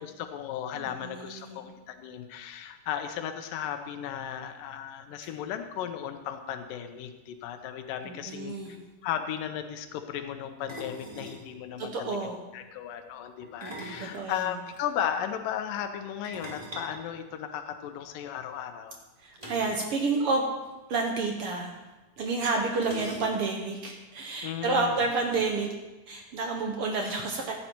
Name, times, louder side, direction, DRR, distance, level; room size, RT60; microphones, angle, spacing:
voice 1, 0.0-8.8 9.0-12.2 12.5-19.0 24.4-25.1, left 9 dB, 85° left, 7 dB, 2.4 m, -35 dB
voice 2, 1.0-1.6 8.0-8.8 11.8-12.4 13.6-14.4 19.2-20.4 20.9-21.7 22.2-25.7 26.1-27.5, right 3 dB, 75° right, 2 dB, 1.3 m, -30 dB
sound 1, 8.4-8.5 8.6-8.9 10.7-11.5 13.4-14.8 16.2-17.9 19.4-19.9 20.1-20.2 20.6-20.7 21.7-21.8 22.8-23.6, left 1 dB, 15° right, 1.6 m, -43 dB
15.0 x 9.2 x 4.5 m, 1.1 s
omnidirectional pair, 3.8 m